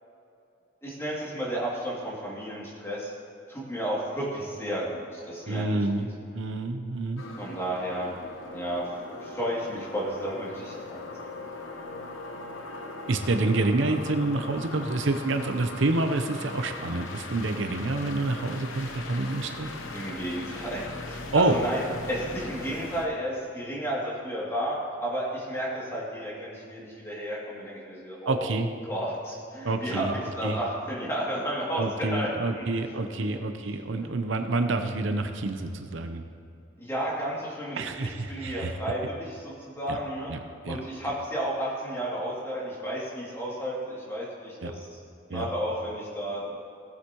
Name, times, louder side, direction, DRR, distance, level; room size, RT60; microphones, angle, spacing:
voice 1, 0.8-3.1 3.5-5.6 5.9-6.1 7.4-8.1 8.5-8.9 9.2-11.0 19.9-28.6 28.8-32.6 33.2-33.4 34.0-34.1 36.8-40.3 40.7-45.0 45.3-46.6, equal, 15° left, -6 dB, 2.5 m, -32 dB
voice 2, 5.5-6.1 6.3-7.2 13.1-19.7 21.3-21.6 28.3-28.7 29.6-30.1 30.4-30.6 31.8-36.2 37.8-38.7 39.9-40.0 40.3-40.4 40.6-40.8 44.6-44.7 45.3-45.4, right 2 dB, 75° right, 7 dB, 0.7 m, -28 dB
sound 1, 7.2-23.1, left 2 dB, 90° left, 1.0 m, -40 dB
17.0 x 8.1 x 3.0 m, 2.6 s
head